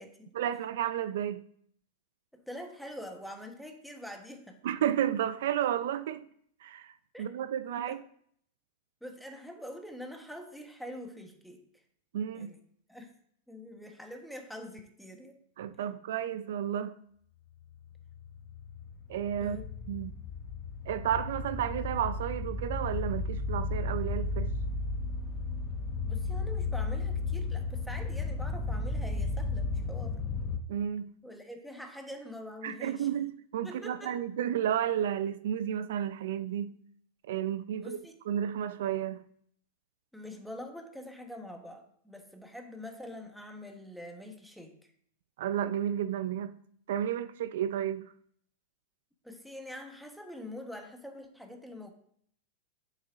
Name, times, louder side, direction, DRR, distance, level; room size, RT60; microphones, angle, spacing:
voice 1, 0.3-1.4 4.6-6.2 6.6-8.0 12.1-12.5 15.6-17.0 19.1-19.6 19.9-20.2 20.9-24.5 30.7-31.2 32.6-36.8 37.3-38.0 38.3-39.2 45.4-46.6 46.9-48.1, right 10 dB, 70° right, 0.5 m, -32 dB
voice 2, 2.3-4.6 7.1-7.3 7.8-8.0 9.0-11.6 12.3-12.6 12.9-13.1 13.5-15.4 19.4-19.7 26.0-30.2 31.2-33.1 33.6-34.2 37.7-38.2 40.1-44.9 49.2-51.9, left 1 dB, ahead, 1.4 m, -45 dB
sound 1, 17.9-30.6, left 3 dB, 25° left, 1.0 m, -34 dB
8.6 x 6.6 x 3.6 m
hypercardioid pair, 120°, 0 cm